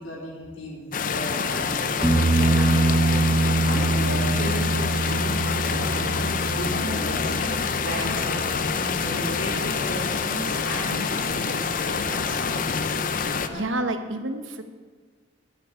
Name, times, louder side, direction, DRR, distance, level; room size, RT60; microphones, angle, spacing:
voice 1, 0.0-3.2 3.6-13.0, equal, 85° left, -4 dB, 3.6 m, -35 dB
sound 1, 0.9-13.5, left 5 dB, 45° left, 0.5 m, -27 dB
sound 2, 1.4-13.7, left 2 dB, 60° left, 1.2 m, -38 dB
sound 3, 2.0-9.6 12.7-12.8, right 2 dB, ahead, 1.3 m, -25 dB
voice 2, 13.5-14.6, right 1 dB, 85° right, 8 dB, 1.0 m, -28 dB
10.5 x 5.9 x 8.3 m, 1.5 s
head